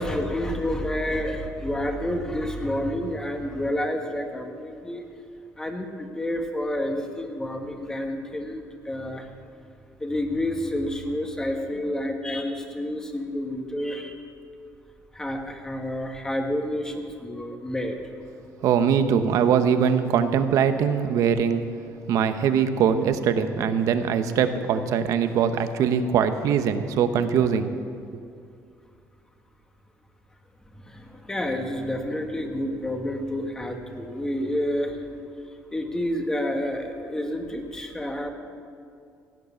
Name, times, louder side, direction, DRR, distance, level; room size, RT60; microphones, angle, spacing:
voice 1, 0.0-5.0 5.6-9.3 10.0-14.1 15.1-18.0 30.8-35.0 35.7-38.3, left 1 dB, 10° left, 4 dB, 1.5 m, -29 dB
voice 2, 18.6-21.6 22.1-27.7, right 7 dB, 70° right, 9 dB, 0.9 m, -22 dB
16.5 x 9.2 x 7.2 m, 2.4 s
cardioid pair, 140°, 6 cm